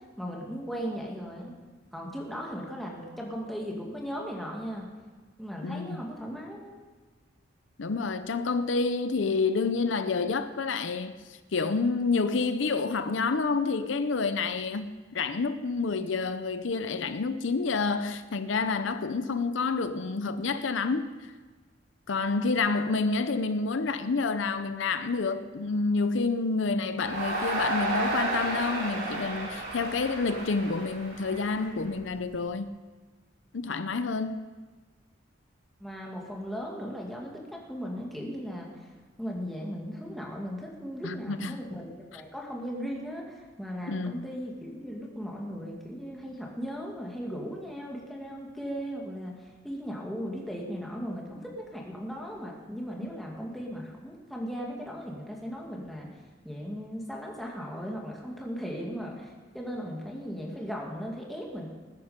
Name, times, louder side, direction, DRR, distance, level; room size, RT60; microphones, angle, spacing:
voice 1, 0.2-1.5 1.9-4.9 5.4-6.7 35.8-38.9 39.2-56.1 56.4-61.7, equal, ahead, 2.3 m, -37 dB
voice 2, 5.6-6.0 7.8-11.2 11.5-21.1 22.1-32.8 33.5-34.4 41.0-41.6 43.9-44.3, left 4 dB, 75° left, 0.6 m, -28 dB
Crowd, 27.0-32.2, right 1 dB, 90° right, 5.9 m, -32 dB
20.0 x 9.8 x 5.1 m
head